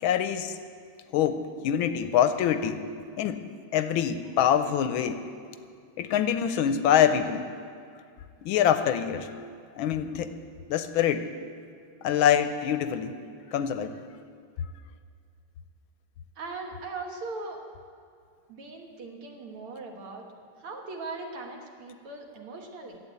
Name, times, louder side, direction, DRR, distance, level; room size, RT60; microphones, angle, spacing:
voice 1, 0.0-0.6 1.1-2.8 3.2-3.5 3.7-5.2 6.0-7.5 8.4-9.3 9.7-10.3 10.7-11.3 12.0-13.1 13.5-13.9, left 9 dB, 75° left, 10 dB, 1.3 m, -25 dB
voice 2, 16.4-17.6 18.5-20.2 20.6-23.0, right 3 dB, 80° right, 2 dB, 2.3 m, -39 dB
11.5 x 8.4 x 8.0 m, 2.3 s
omnidirectional pair, 2.4 m